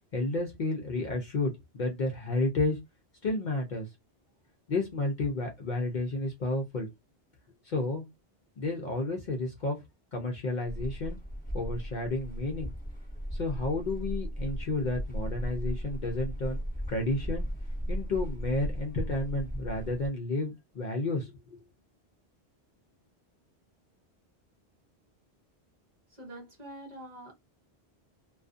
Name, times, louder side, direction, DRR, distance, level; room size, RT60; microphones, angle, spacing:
voice 1, 0.1-2.8 3.2-3.9 4.7-6.9 7.6-8.0 8.6-9.8 10.1-11.2 11.5-12.7 13.3-16.6 16.9-17.5 17.9-21.6, left 2 dB, 55° left, 0.6 m, -31 dB
sound 1, 10.7-20.1, equal, 10° left, 0.6 m, -36 dB
voice 2, 26.1-27.3, right 1 dB, 40° right, 1.0 m, -45 dB
2.4 x 2.3 x 2.4 m
omnidirectional pair, 1.1 m